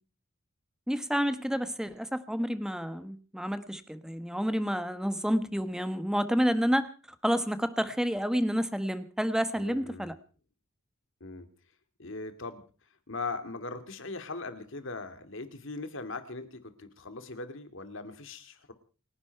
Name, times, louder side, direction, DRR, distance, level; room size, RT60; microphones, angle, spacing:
voice 1, 0.9-6.9 7.2-10.1, equal, 5° right, 11 dB, 1.2 m, -29 dB
voice 2, 9.6-10.1 11.2-11.5 12.0-12.6 13.1-18.7, left 3 dB, 65° left, 9 dB, 2.2 m, -40 dB
29.0 x 10.5 x 4.6 m, 0.38 s
head